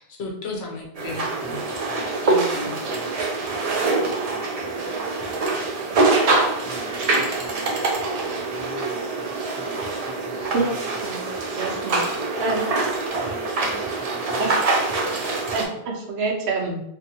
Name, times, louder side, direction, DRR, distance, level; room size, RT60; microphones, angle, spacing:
voice 1, 0.0-1.6 2.3-2.8, left 2 dB, 85° left, -1 dB, 1.0 m, -34 dB
sound 1, 0.9-15.6, right 3 dB, 55° right, 0.4 m, -24 dB
voice 2, 1.4-2.2 2.6-5.6 6.6-7.9 8.5-11.0 12.1-12.5 13.1-14.8 15.1-15.4, left 1 dB, 5° left, -4 dB, 0.5 m, -44 dB
voice 3, 10.5-11.2 11.5-12.0 12.4-12.7 14.4-14.5 15.5-16.8, right 3 dB, 85° right, 1 dB, 0.9 m, -26 dB
2.6 x 2.6 x 2.6 m, 0.77 s
omnidirectional pair, 1.1 m